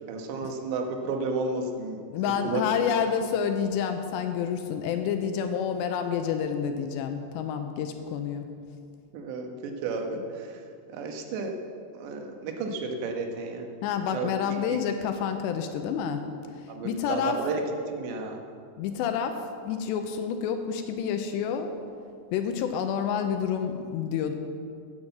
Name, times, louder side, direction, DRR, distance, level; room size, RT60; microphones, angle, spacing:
voice 1, 0.1-2.0 2.2-2.6 9.1-10.6 10.9-11.5 11.9-13.7 14.1-14.4 16.7-17.6 17.9-18.4, right 4 dB, 80° right, 3 dB, 3.3 m, -32 dB
voice 2, 2.1-8.5 13.8-16.2 16.5-17.4 18.8-21.7 22.3-24.3, left 7 dB, 85° left, 7 dB, 2.8 m, -29 dB
9.5 x 8.9 x 7.9 m, 2.3 s
omnidirectional pair, 5.1 m